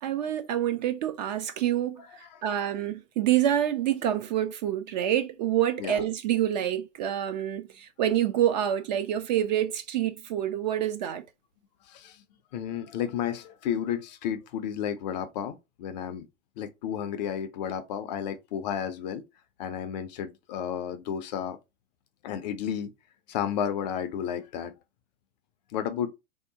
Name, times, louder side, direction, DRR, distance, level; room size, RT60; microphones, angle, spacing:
voice 1, 0.0-11.2, right 11 dB, 35° right, 0.4 m, -27 dB
voice 2, 2.0-2.4 5.8-6.0 11.9-12.2 12.5-16.3 16.6-19.2 19.6-21.6 22.2-22.9 23.3-24.7 25.7-26.1, left 9 dB, 35° left, 0.4 m, -32 dB
3.3 x 2.7 x 2.6 m
hypercardioid pair, 115°, 40 cm